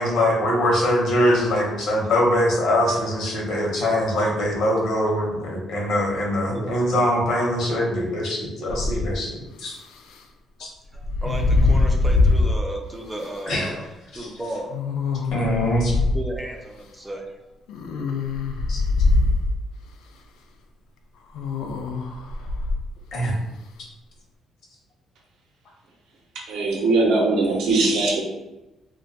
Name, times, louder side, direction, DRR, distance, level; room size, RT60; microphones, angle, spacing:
voice 1, 0.0-9.8 10.6-10.7 13.5-13.7 14.1-14.3 15.3-15.9 18.7-18.8 23.1-23.3, left 1 dB, 60° left, -1 dB, 0.8 m, -22 dB
Sensual Breathing, 8.7-9.2 10.9-12.6 13.2-13.3 14.7-16.2 17.7-19.6 21.3-22.8, left 3 dB, 85° left, 0.3 m, -22 dB
voice 2, 10.6-13.8 14.1-14.7 16.1-17.3, right 1 dB, 10° right, 1 dB, 0.3 m, -34 dB
voice 3, 26.3-28.2, right 3 dB, 75° right, 0 dB, 0.6 m, -20 dB
2.2 x 2.2 x 3.9 m, 1.0 s
cardioid pair, 160°, 0 cm